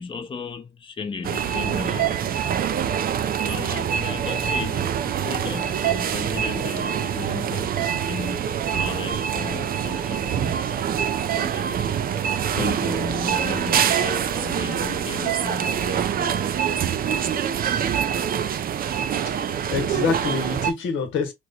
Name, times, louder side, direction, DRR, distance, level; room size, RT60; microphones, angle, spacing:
voice 1, 0.0-2.2 3.4-10.7 11.3-11.8 12.5-16.8, left 5 dB, 25° left, 0.6 m, -35 dB
sound 1, 1.2-20.7, right 9 dB, 50° right, 0.4 m, -25 dB
voice 2, 19.2-21.3, left 5 dB, 80° left, 1.0 m, -26 dB
3.0 x 2.1 x 3.9 m
cardioid pair, 90°, 20 cm